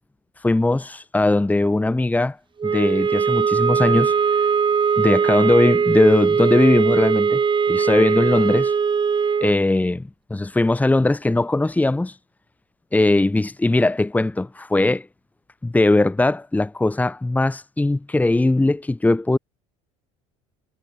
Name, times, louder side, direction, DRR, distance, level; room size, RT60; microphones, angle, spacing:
voice 1, 0.4-2.4 2.6-4.2 5.0-7.4 7.7-8.7 9.4-12.1 12.9-15.1 15.6-19.4, left 2 dB, 10° left, 1.6 m, -19 dB
sound 1, 2.6-9.6, right 6 dB, 30° right, 3.7 m, -20 dB
hypercardioid pair, 75°, 15 cm